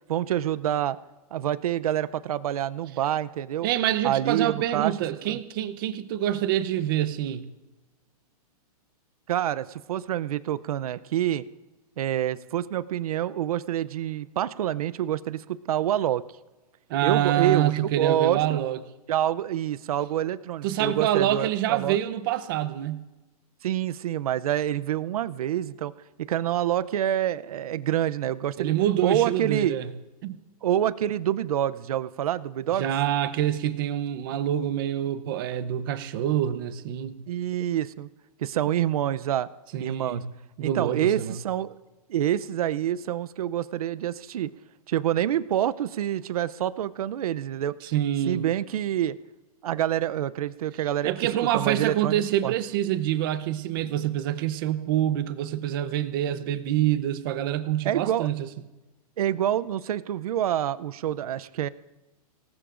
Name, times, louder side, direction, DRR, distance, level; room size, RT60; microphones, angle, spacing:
voice 1, 0.1-1.0 1.3-3.7 4.0-4.9 5.3-5.4 9.3-11.4 12.0-16.2 17.0-18.6 19.1-22.0 23.6-25.9 26.2-28.7 29.0-29.8 30.6-32.9 37.3-38.1 38.4-39.5 39.8-40.2 40.6-41.7 42.1-44.5 44.9-47.8 48.3-49.2 49.6-51.1 51.5-52.5 57.8-58.3 59.2-61.7, right 11 dB, 70° right, 16 dB, 0.6 m, -27 dB
voice 2, 3.6-7.5 16.9-18.8 20.6-23.1 28.6-29.9 30.2-30.4 32.7-37.2 39.7-40.3 40.6-41.4 47.8-48.5 51.0-58.5, right 11 dB, 35° right, 13 dB, 0.8 m, -26 dB
25.5 x 19.0 x 2.5 m, 1.1 s
hypercardioid pair, 165°, 20 cm